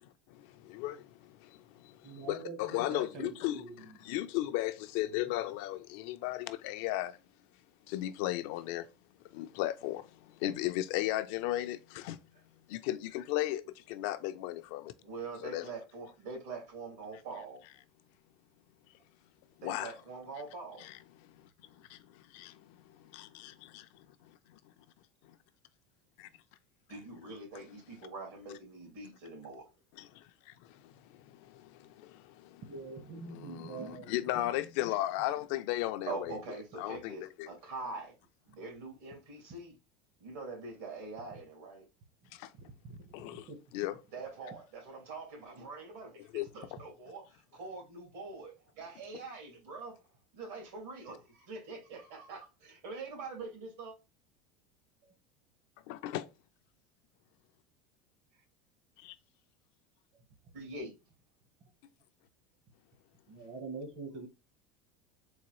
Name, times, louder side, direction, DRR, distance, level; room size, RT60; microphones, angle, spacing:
voice 1, 0.0-7.2 7.9-8.9 9.3-12.2 12.7-14.9 15.4-15.7 19.6-19.9 20.8-21.5 21.9-24.1 24.5-24.6 26.2-26.3 30.0-32.6 33.3-36.4 36.8-37.5 42.3-42.5 43.1-43.5 43.7-44.0 46.3-46.5 55.9-56.3 59.0-59.1, left 15 dB, 65° left, 0.3 m, -36 dB
voice 2, 2.0-4.0 5.2-5.3 32.6-34.4 42.8-43.6 55.0-55.1 58.3-58.4 63.3-64.3, right 3 dB, 50° right, 0.9 m, -44 dB
voice 3, 15.0-17.6 19.6-20.9 26.9-29.7 36.1-38.1 38.5-39.7 40.2-41.8 44.1-47.2 47.5-49.9 50.3-53.9 60.5-60.9, right 3 dB, 80° right, 2.1 m, -44 dB
3.9 x 2.6 x 3.0 m
supercardioid pair, 155°, 0 cm